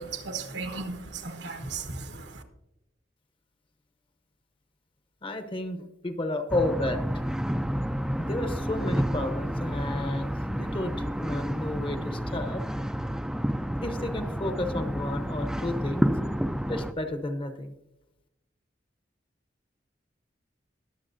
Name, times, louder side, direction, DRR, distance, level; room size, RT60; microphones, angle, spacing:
voice 1, 0.0-2.4, right 4 dB, 75° right, 6 dB, 1.3 m, -36 dB
voice 2, 5.2-7.2 8.2-12.6 13.8-16.1 16.7-17.7, left 1 dB, 30° left, 7 dB, 0.8 m, -32 dB
sound 1, 6.5-16.9, equal, 5° right, 0.4 m, -30 dB
21.0 x 7.1 x 2.6 m, 0.90 s
head